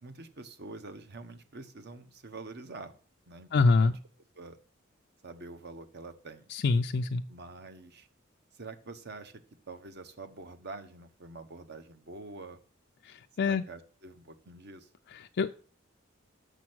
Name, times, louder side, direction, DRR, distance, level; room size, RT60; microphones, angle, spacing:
voice 1, 0.0-2.9 3.3-3.9 4.3-4.6 5.2-6.5 7.3-8.1 8.5-9.4 9.7-12.6 13.4-14.9, right 3 dB, 55° right, 9 dB, 1.0 m, -46 dB
voice 2, 3.5-3.9 6.5-7.2 13.0-13.6 15.1-15.5, left 4 dB, 55° left, 6 dB, 0.4 m, -26 dB
7.1 x 6.6 x 6.2 m, 0.41 s
head